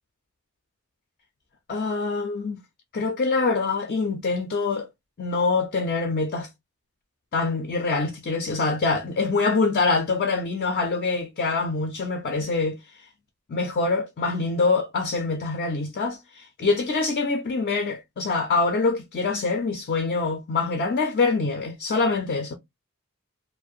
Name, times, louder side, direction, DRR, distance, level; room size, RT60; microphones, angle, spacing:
voice 1, 1.7-2.6 2.9-4.9 5.2-6.5 7.3-12.8 13.5-22.5, left 3 dB, 45° left, 0.4 m, -25 dB
2.3 x 2.1 x 2.5 m
head